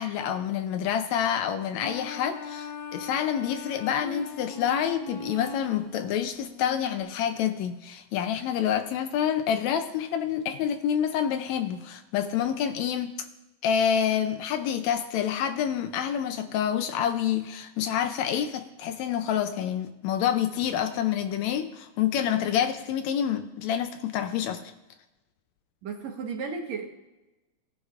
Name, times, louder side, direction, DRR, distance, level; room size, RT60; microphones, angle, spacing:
voice 1, 0.0-13.1 13.6-24.6, left 9 dB, 75° left, 8 dB, 1.8 m, -27 dB
sound 1, 1.8-7.0, left 3 dB, 60° left, 2.5 m, -40 dB
voice 2, 25.8-26.9, right 5 dB, 70° right, 2 dB, 2.4 m, -34 dB
18.0 x 9.6 x 2.5 m, 1.0 s
omnidirectional pair, 3.4 m